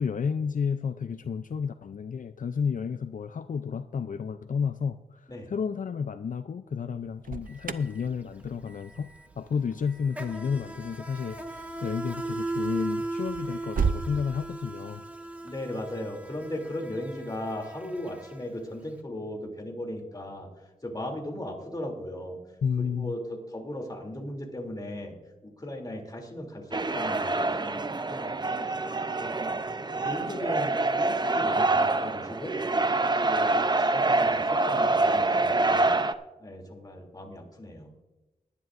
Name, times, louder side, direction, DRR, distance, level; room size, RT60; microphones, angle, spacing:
voice 1, 0.0-15.0 22.6-23.1, left 6 dB, 70° left, 10 dB, 0.5 m, -31 dB
Alarm, 7.0-14.1, right 6 dB, 80° right, 0.6 m, -36 dB
Insect, 7.5-7.6 7.9-18.9, right 2 dB, 10° right, 1.4 m, -37 dB
voice 2, 15.4-20.5 20.8-22.4 22.8-25.1 25.4-29.7 30.0-32.6 33.0-35.9 36.4-37.9, left 1 dB, 25° left, 1 dB, 2.9 m, -37 dB
sound 1, 26.7-36.1, right 2 dB, 30° right, 0.6 m, -26 dB
20.5 x 10.5 x 2.6 m, 1.1 s
wide cardioid pair, 85°, 14 cm